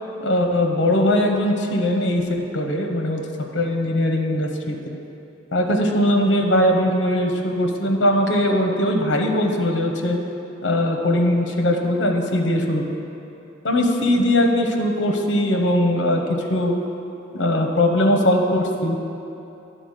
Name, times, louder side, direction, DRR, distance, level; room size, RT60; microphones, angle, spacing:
voice 1, 0.2-3.2 3.5-5.0 5.5-10.2 10.6-12.8 13.6-16.2 16.5-16.7 17.3-19.0, left 1 dB, 65° left, 3 dB, 0.8 m, -20 dB
10.0 x 3.9 x 6.5 m, 2.8 s
head